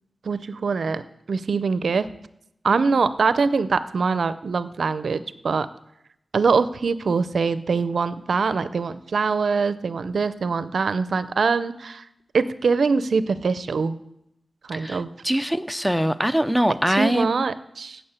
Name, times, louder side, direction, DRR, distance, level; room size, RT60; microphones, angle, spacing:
voice 1, 0.2-1.0 1.3-2.1 2.6-5.7 6.3-12.0 12.3-14.0 14.6-15.1 16.9-18.0, right 4 dB, 75° right, 14 dB, 0.5 m, -23 dB
voice 2, 14.7-17.4, equal, ahead, 13 dB, 0.5 m, -23 dB
8.7 x 7.2 x 8.1 m, 0.80 s
wide cardioid pair, 85°, 0 cm